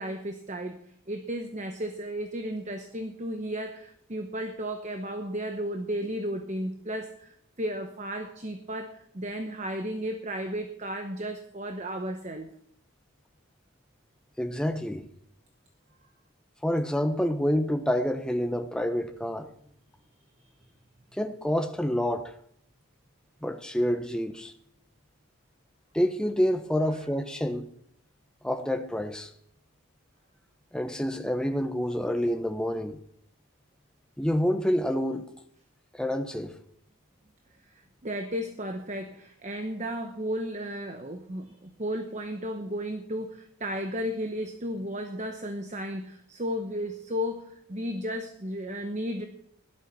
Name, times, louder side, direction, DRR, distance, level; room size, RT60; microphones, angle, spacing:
voice 1, 0.0-12.5 37.7-49.3, equal, 35° right, 1.0 m, -34 dB
voice 2, 14.4-15.1 16.6-19.5 21.1-22.3 23.4-24.5 25.9-27.7 28.4-29.3 30.7-33.0 34.2-35.3 35.9-36.5, equal, 5° left, 0.9 m, -28 dB
17.0 x 11.5 x 6.1 m
head